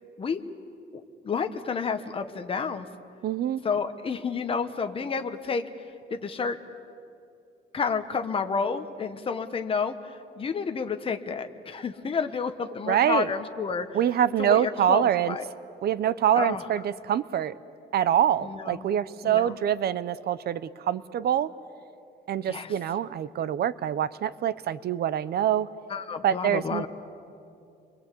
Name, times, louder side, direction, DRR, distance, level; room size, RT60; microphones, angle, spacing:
voice 1, 1.2-2.9 3.6-5.7 6.1-6.6 7.7-10.0 10.3-14.0 14.4-15.4 16.3-16.6 18.4-18.9 19.2-19.5 22.5-22.7 25.9-26.9, left 5 dB, 30° left, 7 dB, 1.1 m, -30 dB
voice 2, 3.2-3.6 12.9-13.3 13.9-15.4 15.8-17.5 17.9-21.5 22.3-25.7 26.2-26.9, right 10 dB, 55° right, 16 dB, 0.7 m, -25 dB
29.5 x 23.0 x 8.4 m, 2.7 s
cardioid pair, 170°, 19 cm